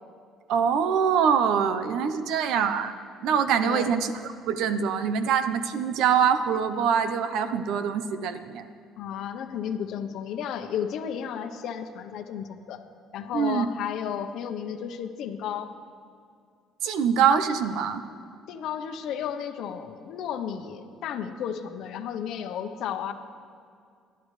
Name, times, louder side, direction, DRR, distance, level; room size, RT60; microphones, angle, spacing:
voice 1, 0.5-2.9 3.2-8.7 13.3-13.7 16.8-18.0, right 7 dB, 80° right, 10 dB, 0.8 m, -24 dB
voice 2, 9.0-12.8 13.1-15.7 18.5-23.1, left 8 dB, 70° left, 6 dB, 0.9 m, -33 dB
28.0 x 11.5 x 3.3 m, 2.3 s
cardioid pair, 110°, 0 cm